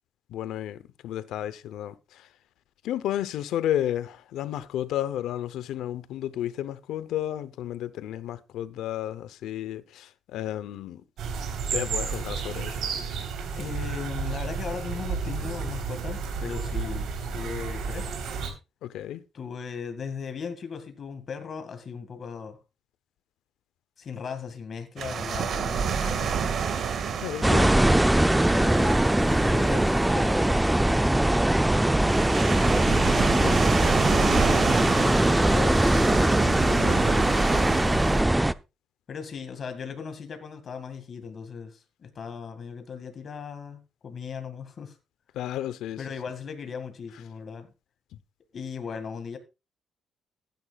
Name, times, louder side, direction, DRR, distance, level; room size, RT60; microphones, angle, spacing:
voice 1, 0.3-2.3 2.8-11.0 11.7-12.9 18.8-19.2 27.2-27.7 32.8-33.7 45.3-46.0, left 12 dB, 85° left, 0.7 m, -32 dB
sound 1, 11.2-18.5, right 5 dB, 75° right, 3.5 m, -32 dB
voice 2, 13.5-18.2 19.3-22.6 24.0-26.4 27.4-32.3 34.0-37.4 39.1-45.0 46.0-47.7 48.5-49.4, left 6 dB, 50° left, 2.0 m, -37 dB
sound 2, 25.0-38.2, right 6 dB, 60° right, 1.8 m, -30 dB
sound 3, 27.4-38.5, right 1 dB, 10° right, 0.5 m, -21 dB
15.5 x 10.5 x 2.4 m
cardioid pair, 90°, 0 cm